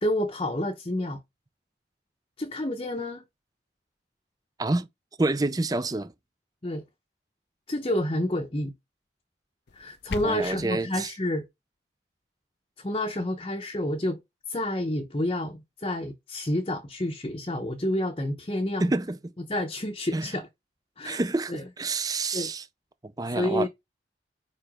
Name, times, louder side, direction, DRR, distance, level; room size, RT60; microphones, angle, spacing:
voice 1, 0.0-1.2 2.4-3.2 6.6-6.8 7.7-8.7 9.7-11.4 12.8-14.2 14.5-18.9 19.5-20.5 21.0-21.2 21.5-21.6 22.3-22.5 23.3-23.7, left 1 dB, 30° left, 0.8 m, -29 dB
voice 2, 5.2-6.1 10.2-11.1 18.8-19.2 20.1-20.3 21.0-22.6 23.0-23.7, right 2 dB, 20° right, 0.5 m, -28 dB
sound 1, 9.7-10.7, left 4 dB, 65° left, 0.6 m, -38 dB
4.9 x 4.8 x 5.0 m
head